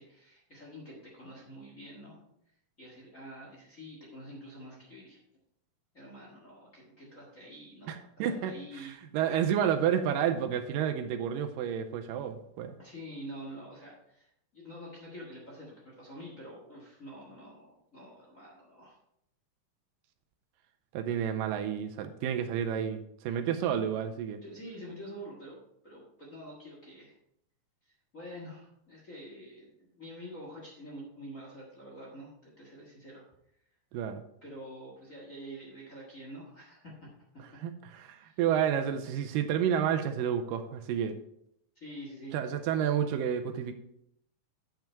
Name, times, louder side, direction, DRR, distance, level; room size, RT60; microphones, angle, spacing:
voice 1, 0.0-2.2 2.8-5.2 5.9-9.0 12.8-19.0 24.4-27.2 27.8-33.2 34.4-36.9 37.9-38.4 41.7-42.3, equal, 45° left, -3 dB, 1.0 m, -47 dB
voice 2, 7.9-12.8 20.9-24.4 33.9-34.2 37.6-41.2 42.3-43.7, right 9 dB, 80° right, 8 dB, 2.1 m, -30 dB
8.9 x 5.8 x 4.5 m, 0.76 s
omnidirectional pair, 4.2 m